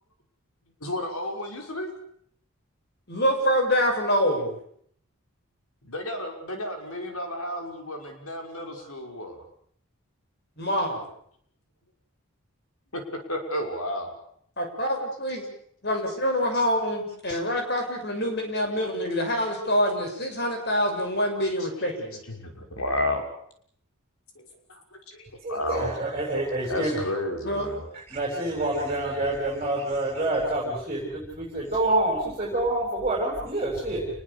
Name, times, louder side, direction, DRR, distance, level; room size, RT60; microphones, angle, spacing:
voice 1, 0.8-1.9 5.8-9.4 12.9-13.0 13.3-14.1 16.5-16.6 17.3-17.4 21.5-21.7 22.3-23.2 25.2-25.9 26.7-27.9, left 1 dB, 85° left, 4 dB, 6.1 m, -32 dB
voice 2, 3.1-4.6 10.6-11.0 14.6-15.4 15.8-22.2 27.4-27.7, equal, 50° left, 4 dB, 7.0 m, -26 dB
voice 3, 25.4-27.0 28.1-34.0, right 1 dB, 30° right, -2 dB, 7.1 m, -27 dB
29.0 x 21.5 x 7.1 m, 0.65 s
head